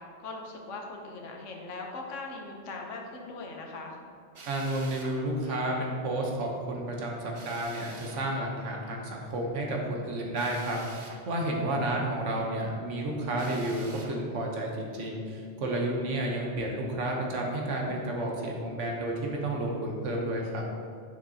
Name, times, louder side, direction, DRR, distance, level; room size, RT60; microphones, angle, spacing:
voice 1, 0.0-4.0 15.9-16.3, left 3 dB, 80° left, 1 dB, 1.2 m, -41 dB
Drill, 4.3-5.2 7.3-8.2 10.3-11.2 13.3-14.2, right 3 dB, 40° right, 0.4 m, -47 dB
voice 2, 4.5-20.6, right 1 dB, 75° right, 0 dB, 1.2 m, -31 dB
6.5 x 6.2 x 2.7 m, 2.3 s
omnidirectional pair, 1.3 m